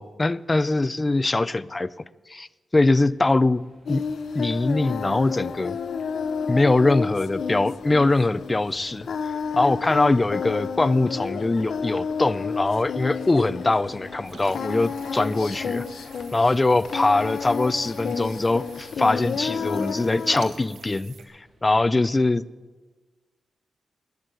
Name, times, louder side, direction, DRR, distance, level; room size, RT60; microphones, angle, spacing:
voice 1, 0.0-1.9 2.3-2.5 2.7-3.6 3.9-4.0 4.3-5.8 6.5-15.9 16.3-21.1 21.6-22.4, left 2 dB, 15° left, 0.3 m, -22 dB
sound 1, 2.9-21.7, right 1 dB, 40° right, 3.6 m, -56 dB
Singing, 3.9-20.5, left 6 dB, 65° left, 0.7 m, -31 dB
sound 2, 14.2-21.2, right 5 dB, 80° right, 1.6 m, -48 dB
11.5 x 9.7 x 8.9 m
wide cardioid pair, 170°, 0 cm